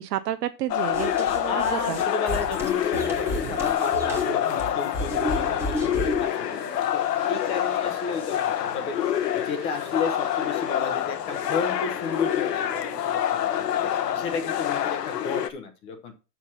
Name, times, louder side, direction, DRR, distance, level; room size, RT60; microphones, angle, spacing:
voice 1, 0.0-2.0, right 12 dB, 80° right, 10 dB, 0.8 m, -31 dB
sound 1, 0.7-15.5, left 11 dB, 80° left, 1.0 m, -27 dB
sound 2, 0.9-6.3, equal, 5° right, 1.1 m, -32 dB
voice 2, 1.5-7.0 7.3-9.0 9.3-13.2 13.6-16.1, left 4 dB, 10° left, 6 dB, 0.6 m, -33 dB
sound 3, 4.2-14.5, right 8 dB, 30° right, 0.8 m, -46 dB
6.7 x 5.9 x 5.5 m, 0.30 s
hypercardioid pair, 160°, 48 cm